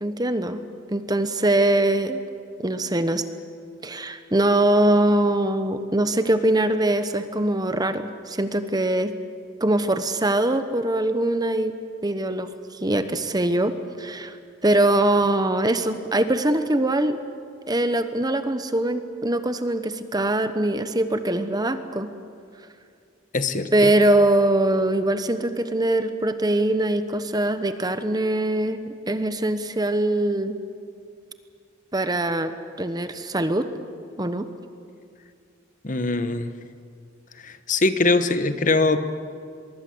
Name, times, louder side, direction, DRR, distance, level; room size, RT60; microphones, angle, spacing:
voice 1, 0.0-0.6 0.9-2.2 2.6-3.2 3.8-9.1 9.6-11.7 12.0-12.5 12.8-14.4 14.6-17.2 17.7-22.1 23.7-30.6 31.9-32.5 32.8-33.7 34.2-34.5, right 1 dB, 20° right, 10 dB, 1.0 m, -22 dB
voice 2, 23.3-23.9 35.8-36.5 37.4-39.0, left 3 dB, 40° left, 10 dB, 1.2 m, -22 dB
24.5 x 22.5 x 7.9 m, 2.3 s
head